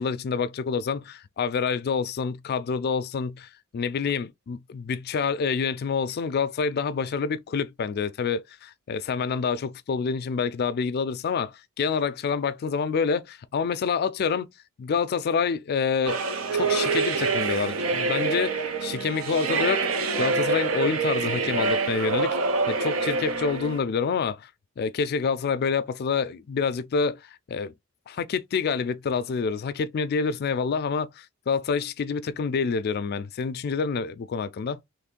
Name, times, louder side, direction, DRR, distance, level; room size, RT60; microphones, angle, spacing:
voice 1, 0.0-14.5 14.8-16.2 16.5-19.9 20.2-22.4 22.7-24.5 24.8-27.2 27.5-27.7 28.1-34.8, left 5 dB, 50° left, 0.4 m, -27 dB
sound 1, 16.0-23.8, right 4 dB, 75° right, 0.5 m, -26 dB
3.1 x 2.5 x 3.6 m
head